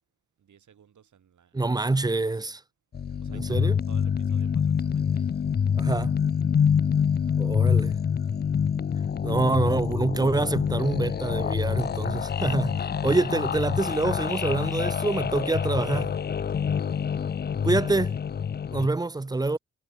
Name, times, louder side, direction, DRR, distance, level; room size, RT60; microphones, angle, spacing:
voice 1, 0.4-2.6 3.2-5.5 7.0-7.6 8.2-8.4 12.0-12.3 14.0-18.2 18.6-19.6, right 8 dB, 80° right, 7.3 m, -58 dB
voice 2, 1.5-2.5 3.5-3.7 5.8-6.2 7.4-7.9 9.2-16.2 17.6-18.1 18.7-19.6, right 2 dB, 15° right, 0.6 m, -26 dB
sound 1, 2.9-18.9, left 7 dB, 35° left, 0.5 m, -26 dB
cardioid pair, 70°, 29 cm